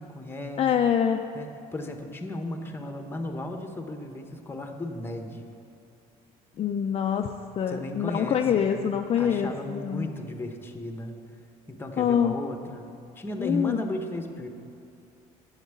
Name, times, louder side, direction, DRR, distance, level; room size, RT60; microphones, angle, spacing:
voice 1, 0.0-0.6 1.3-5.5 7.7-8.9 9.2-11.2 11.7-14.5, left 1 dB, 15° left, 5 dB, 1.1 m, -35 dB
voice 2, 0.6-1.2 6.6-7.3 7.6-10.1 12.0-12.4 13.4-13.8, left 8 dB, 40° left, 4 dB, 0.5 m, -25 dB
9.2 x 7.3 x 8.3 m, 2.6 s
cardioid pair, 125°, 16 cm